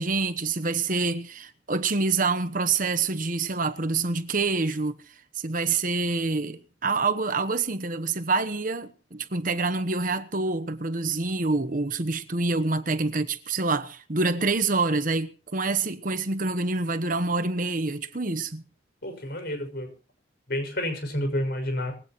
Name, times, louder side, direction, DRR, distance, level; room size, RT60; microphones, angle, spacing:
voice 1, 0.0-18.6, right 3 dB, 45° right, 1.1 m, -27 dB
voice 2, 19.0-19.9 20.5-21.9, left 1 dB, 55° left, 6.1 m, -29 dB
21.0 x 16.5 x 3.1 m
head